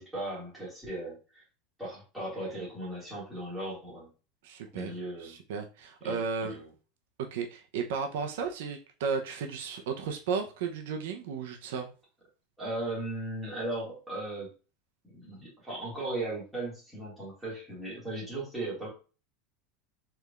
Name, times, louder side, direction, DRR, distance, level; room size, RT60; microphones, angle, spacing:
voice 1, 0.0-1.4 1.8-4.1 4.7-5.4 6.0-6.7 12.6-14.5 15.0-18.9, right 1 dB, ahead, -8 dB, 1.9 m, -37 dB
voice 2, 4.4-4.9 5.2-6.5 7.3-11.9, right 5 dB, 70° right, 4 dB, 0.6 m, -34 dB
4.7 x 3.3 x 2.4 m, 0.34 s
supercardioid pair, 180°, 0 cm